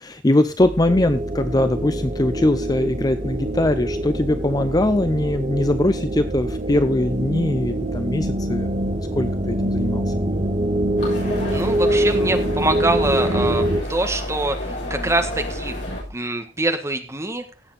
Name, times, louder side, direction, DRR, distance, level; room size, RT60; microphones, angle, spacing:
voice 1, 0.0-10.1, left 1 dB, 20° left, 11 dB, 0.6 m, -21 dB
sound 1, 0.6-16.1, equal, 35° left, 3.5 m, -34 dB
sound 2, 0.9-13.8, right 1 dB, 30° right, 1.0 m, -25 dB
sound 3, 11.0-16.0, left 1 dB, 60° left, 6.8 m, -32 dB
voice 2, 11.5-13.6 13.9-15.8 16.1-17.4, right 2 dB, 15° right, 5 dB, 1.6 m, -24 dB
17.0 x 7.2 x 4.2 m, 0.32 s
head